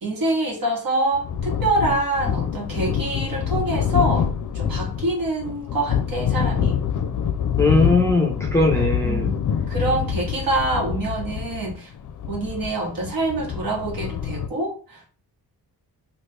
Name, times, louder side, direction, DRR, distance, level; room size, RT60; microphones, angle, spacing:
voice 1, 0.0-6.8 9.0-9.4 9.7-11.9 12.3-15.1, right 2 dB, 60° right, 1.3 m, -25 dB
sound 1, 1.1-14.5, left 8 dB, 50° left, 0.5 m, -26 dB
voice 2, 7.6-9.3, left 2 dB, 5° left, 0.7 m, -19 dB
3.0 x 2.5 x 3.3 m
cardioid pair, 95°, 39 cm